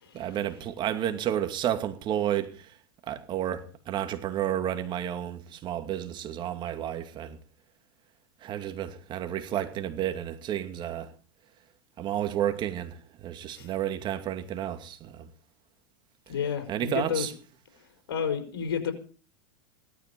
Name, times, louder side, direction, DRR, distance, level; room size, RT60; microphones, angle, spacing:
voice 1, 0.1-2.8 3.0-7.4 8.4-11.1 12.0-15.3 16.3-16.4 16.7-17.3, right 11 dB, 40° right, 2.5 m, -31 dB
voice 2, 16.3-17.3 18.1-18.9, left 7 dB, 80° left, 4.8 m, -30 dB
17.5 x 13.0 x 5.3 m
hypercardioid pair, 105°, 13 cm